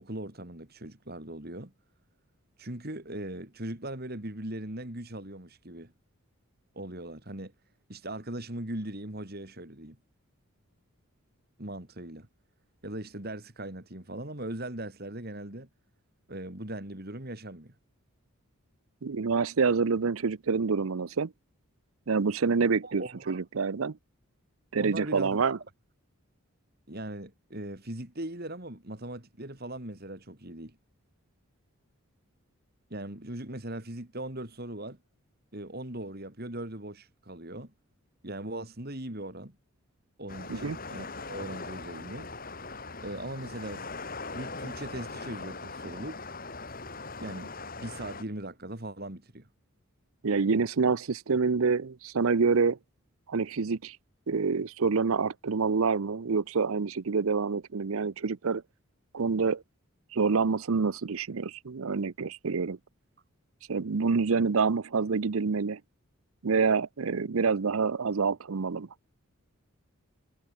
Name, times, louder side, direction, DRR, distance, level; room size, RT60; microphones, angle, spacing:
voice 1, 0.0-1.7 2.6-5.9 6.7-7.5 7.9-10.0 11.6-12.3 12.8-15.7 16.3-17.7 22.8-23.4 24.8-25.6 26.9-30.8 32.9-35.0 35.5-37.7 38.2-39.5 40.2-42.3 43.0-43.8 44.3-46.2 47.2-47.5 47.8-49.5, right 1 dB, 45° right, 2.8 m, -39 dB
voice 2, 19.0-21.3 22.1-24.0 24.7-25.6 40.5-40.8 50.2-52.8 53.3-54.0 54.3-58.6 59.1-59.6 60.1-62.8 63.7-65.8 66.4-68.9, right 5 dB, 70° right, 0.6 m, -27 dB
sound 1, 40.3-48.2, left 3 dB, 40° left, 3.6 m, -40 dB
head